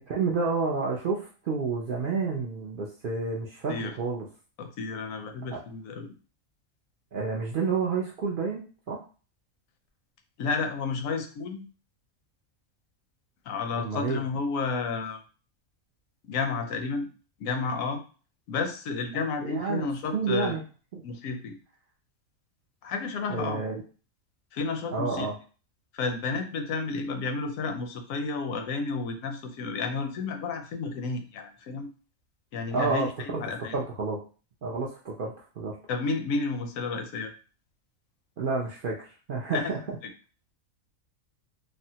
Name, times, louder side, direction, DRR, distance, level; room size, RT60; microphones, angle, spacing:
voice 1, 0.0-4.3 5.5-5.6 7.1-8.6 8.9-9.0 13.8-14.2 19.4-19.8 20.1-20.6 20.9-21.0 23.3-23.8 24.9-25.3 32.7-33.4 33.7-34.2 34.6-35.8 38.4-40.0, right 4 dB, 70° right, -2 dB, 0.5 m, -29 dB
voice 2, 4.6-6.1 10.4-11.6 13.4-15.2 16.2-17.1 17.4-18.0 18.5-20.6 21.0-21.6 22.8-23.6 24.5-25.3 25.9-31.9 32.5-33.8 35.9-37.3 39.5-39.7 40.0-40.1, left 4 dB, 75° left, 6 dB, 1.0 m, -31 dB
3.4 x 2.1 x 2.7 m, 0.37 s
omnidirectional pair, 1.4 m